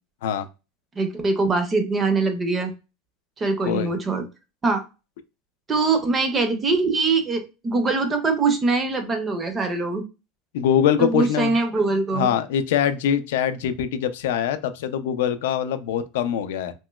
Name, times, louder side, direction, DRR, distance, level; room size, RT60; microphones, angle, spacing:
voice 1, 1.0-2.7 3.4-4.3 4.6-4.8 5.7-10.0 11.0-12.3, right 3 dB, 15° right, 7 dB, 0.4 m, -23 dB
voice 2, 10.5-11.5 12.1-16.7, left 9 dB, 90° left, 11 dB, 0.3 m, -23 dB
3.0 x 2.8 x 2.2 m, 0.29 s
supercardioid pair, 175°, 0 cm